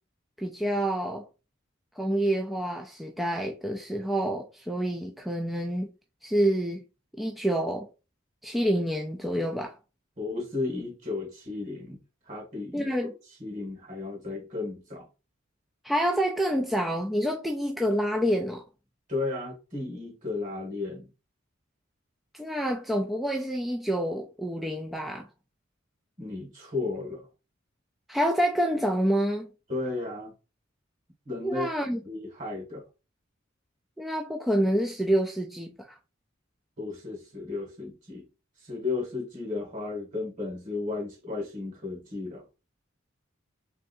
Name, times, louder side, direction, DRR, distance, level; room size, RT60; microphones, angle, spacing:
voice 1, 0.4-1.2 2.0-5.9 6.2-6.8 7.2-7.9 8.4-9.7 12.7-13.1 15.8-18.6 22.3-25.3 28.1-29.5 31.4-32.0 34.0-36.0, equal, ahead, 0.4 m, -27 dB
voice 2, 10.2-12.0 12.3-12.9 13.4-15.1 19.1-21.1 26.2-27.3 29.7-30.3 31.3-32.8 36.8-38.3 38.6-42.4, left 3 dB, 40° right, 2.0 m, -34 dB
3.7 x 3.4 x 2.6 m
head